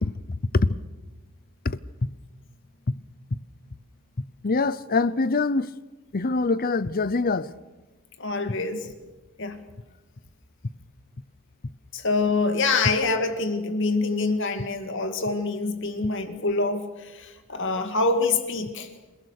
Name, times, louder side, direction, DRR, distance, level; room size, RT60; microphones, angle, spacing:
voice 1, 0.0-0.7 1.6-1.8 2.9-3.0 4.4-5.7 6.1-7.5, left 3 dB, 45° left, 0.7 m, -24 dB
voice 2, 8.2-8.9 9.4-9.6 11.9-18.9, left 3 dB, 60° left, 2.3 m, -26 dB
28.0 x 18.5 x 6.6 m
head